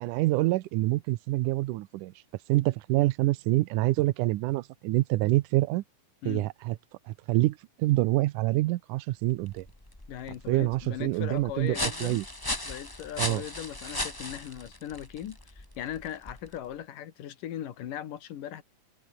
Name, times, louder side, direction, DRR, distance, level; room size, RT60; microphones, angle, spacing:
voice 1, 0.0-2.1 2.5-5.8 6.3-6.8 7.3-9.7 10.5-12.2 13.2-13.4, right 18 dB, 80° right, 2.1 m, -26 dB
sound 1, 9.3-16.7, left 1 dB, 10° left, 1.5 m, -37 dB
voice 2, 10.1-12.2 12.6-18.6, left 11 dB, 70° left, 3.2 m, -39 dB
omnidirectional pair, 3.9 m